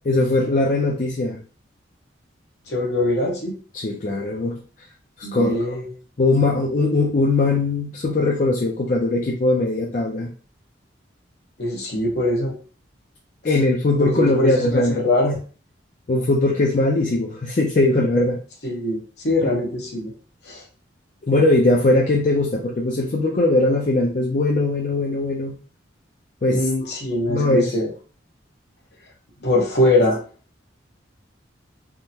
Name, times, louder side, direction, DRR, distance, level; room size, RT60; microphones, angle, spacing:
voice 1, 0.1-1.4 3.7-4.6 5.3-5.8 6.2-10.3 13.4-15.1 16.1-18.4 21.3-25.6 26.4-26.6 27.3-27.7, left 2 dB, 40° left, -2 dB, 0.4 m, -20 dB
voice 2, 2.7-3.6 5.2-5.9 11.6-12.5 14.0-15.4 18.6-20.1 20.4-20.6 26.5-27.9 29.4-30.2, left 1 dB, 60° left, -1 dB, 0.9 m, -22 dB
3.5 x 2.0 x 2.8 m, 0.39 s
head